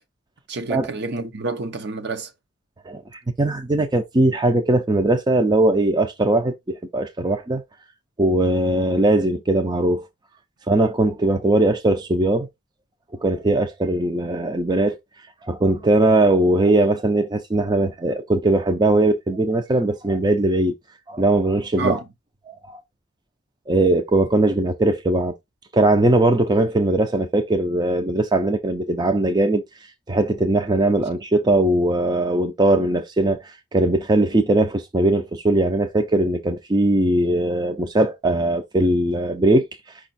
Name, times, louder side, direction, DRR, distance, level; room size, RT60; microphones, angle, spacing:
voice 1, 0.5-2.3 21.7-22.0, right 3 dB, 55° right, 0.8 m, -28 dB
voice 2, 2.9-7.6 8.2-10.1 10.7-12.5 13.2-15.0 15.4-20.7 21.1-22.0 22.5-22.8 23.7-25.3 25.7-29.6 30.1-39.7, right 2 dB, 20° right, 0.5 m, -20 dB
5.3 x 2.4 x 4.0 m
head